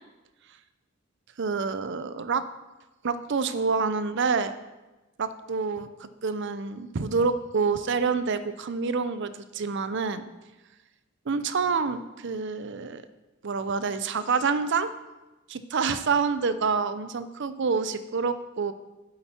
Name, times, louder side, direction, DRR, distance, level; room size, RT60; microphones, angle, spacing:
voice 1, 1.4-2.4 3.0-4.6 5.2-10.3 11.3-13.0 13.4-14.9 15.5-18.7, right 5 dB, 60° right, 12 dB, 0.6 m, -27 dB
8.6 x 8.0 x 4.4 m, 1.1 s
head